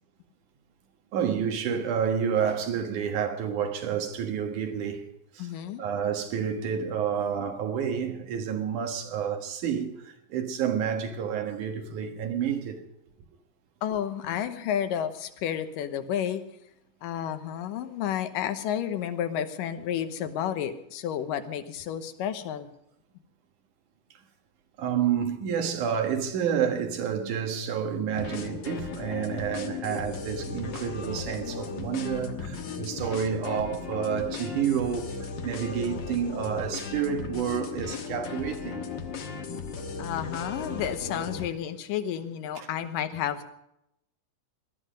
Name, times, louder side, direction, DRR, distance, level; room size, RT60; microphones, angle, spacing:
voice 1, 1.1-5.0 5.3-5.5 5.8-12.8 24.8-38.9 42.6-42.7, right 8 dB, 70° right, 2.9 m, -29 dB
voice 2, 5.4-5.8 13.8-16.4 17.0-22.7 40.0-43.5, left 9 dB, 90° left, 2.7 m, -31 dB
sound 1, 28.1-41.5, left 5 dB, 55° left, 1.3 m, -36 dB
19.5 x 12.5 x 5.2 m
omnidirectional pair, 3.8 m